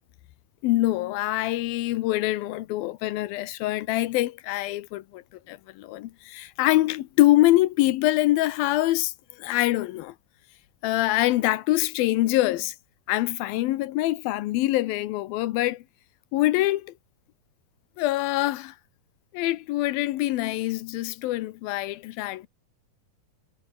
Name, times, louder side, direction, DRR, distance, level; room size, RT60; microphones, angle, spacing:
voice 1, 0.6-10.1 10.8-12.7 13.1-15.8 16.3-16.9 18.0-18.7 19.3-22.5, left 16 dB, 85° left, 2.7 m, -24 dB
omnidirectional pair, 4.1 m